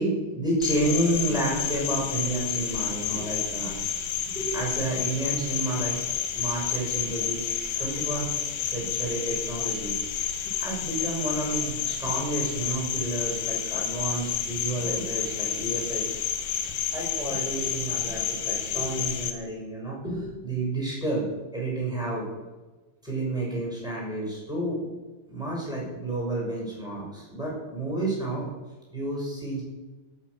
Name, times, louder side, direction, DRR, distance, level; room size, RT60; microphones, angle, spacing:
voice 1, 0.0-3.7 4.2-5.9 6.3-7.5 7.8-9.9 10.3-16.2 16.9-21.3 21.5-22.3 23.0-24.8 25.3-28.5 28.9-29.6, right 2 dB, ahead, -5 dB, 5.5 m, -30 dB
Cricket, 0.6-19.3, left 8 dB, 80° left, 1.9 m, -30 dB
16.0 x 9.1 x 6.5 m, 1.2 s
omnidirectional pair, 5.5 m